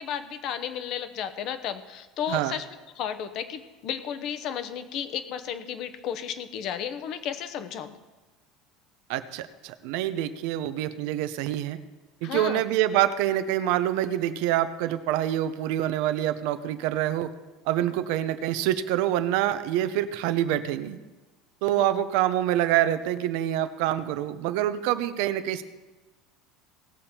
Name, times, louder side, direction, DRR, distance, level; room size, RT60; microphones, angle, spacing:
voice 1, 0.0-2.6 3.0-8.0 12.2-12.6 21.7-22.1, left 9 dB, 45° left, 11 dB, 0.9 m, -33 dB
voice 2, 9.1-11.8 12.2-17.3 17.7-21.0 21.6-25.6, right 12 dB, 70° right, 12 dB, 0.7 m, -26 dB
18.0 x 7.0 x 4.4 m, 1.2 s
cardioid pair, 155°, 0 cm